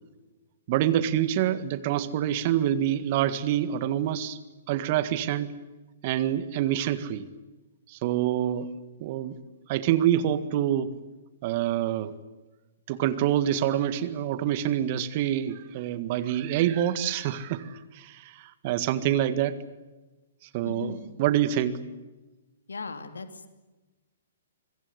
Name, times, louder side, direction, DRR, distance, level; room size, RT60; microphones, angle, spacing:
voice 1, 0.7-4.4 4.7-5.5 6.0-7.3 7.9-8.7 9.0-9.3 9.7-10.9 11.4-12.1 12.9-19.6 20.5-21.8, right 11 dB, 40° right, 13 dB, 1.8 m, -26 dB
voice 2, 20.6-21.0 22.7-23.5, left 4 dB, 75° left, 8 dB, 2.8 m, -37 dB
26.0 x 22.5 x 8.3 m, 1.1 s
figure-of-eight pair, 120°, 0 cm